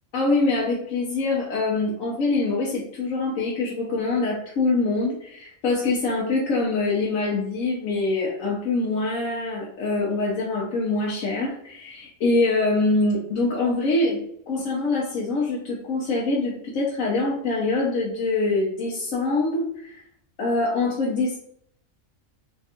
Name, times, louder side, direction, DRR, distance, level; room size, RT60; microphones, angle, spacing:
voice 1, 0.1-14.2 14.5-20.0 20.4-21.4, left 3 dB, 70° left, -4 dB, 1.1 m, -24 dB
3.4 x 2.3 x 4.1 m, 0.67 s
omnidirectional pair, 1.4 m